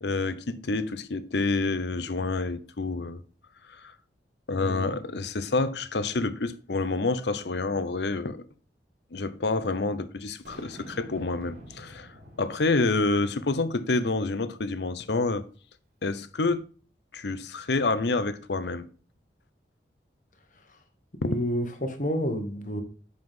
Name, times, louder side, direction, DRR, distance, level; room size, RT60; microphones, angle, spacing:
voice 1, 0.0-3.2 3.7-3.9 4.5-8.4 9.1-12.1 12.4-15.4 16.0-16.6 17.1-18.9, left 3 dB, 70° left, 0.7 m, -28 dB
voice 2, 4.6-4.9 20.7-20.8 21.2-22.8, equal, 45° left, 1.3 m, -30 dB
Boom, 10.4-13.8, right 1 dB, 60° right, 3.1 m, -48 dB
7.8 x 5.7 x 3.7 m
head